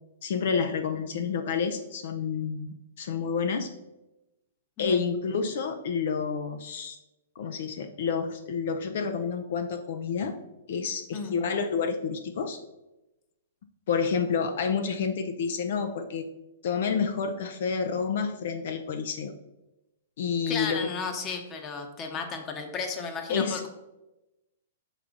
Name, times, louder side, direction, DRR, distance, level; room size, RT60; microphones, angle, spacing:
voice 1, 0.2-2.7 3.0-3.7 4.8-7.0 7.4-10.4 10.7-12.6 13.9-16.3 16.6-19.3 20.2-20.8 23.3-23.6, left 6 dB, 60° left, 6 dB, 0.5 m, -29 dB
voice 2, 20.5-23.7, left 5 dB, 25° left, 5 dB, 0.9 m, -34 dB
5.8 x 4.9 x 3.8 m, 0.98 s
hypercardioid pair, 150°, 0 cm